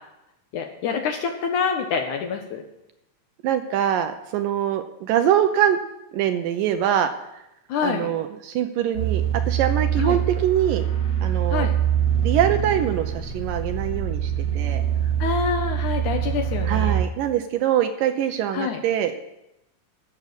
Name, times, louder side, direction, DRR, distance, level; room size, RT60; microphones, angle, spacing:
voice 1, 0.5-2.6 7.7-8.1 10.0-10.2 11.5-11.7 15.2-17.0 18.5-18.8, left 6 dB, 70° left, 4 dB, 2.1 m, -26 dB
voice 2, 3.4-5.8 6.1-7.1 7.8-10.8 11.2-11.7 12.2-14.8 16.6-19.3, right 10 dB, 80° right, 8 dB, 2.1 m, -23 dB
sound 1, 8.9-17.0, right 9 dB, 35° left, 2.2 m, -24 dB
16.0 x 7.2 x 6.7 m, 0.88 s
omnidirectional pair, 4.3 m